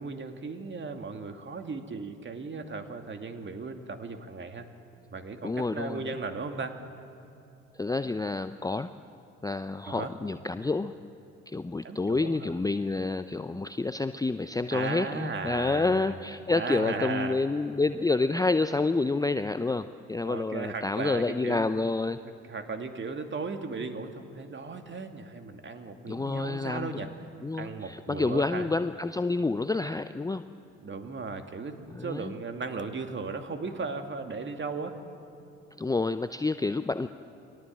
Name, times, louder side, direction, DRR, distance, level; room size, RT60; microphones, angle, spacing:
voice 1, 0.0-4.7 5.1-6.7 9.9-10.1 11.8-12.6 14.7-16.2 16.5-17.4 20.2-21.7 22.5-27.1 27.5-28.7 30.8-35.0, right 4 dB, 30° right, 6 dB, 2.6 m, -36 dB
voice 2, 5.4-6.1 7.8-8.9 9.4-10.9 11.5-22.2 26.1-27.0 27.4-30.4 31.9-32.3 35.8-37.1, left 3 dB, 10° left, 11 dB, 0.7 m, -28 dB
29.5 x 22.5 x 7.6 m, 2.8 s
figure-of-eight pair, 50°, 35 cm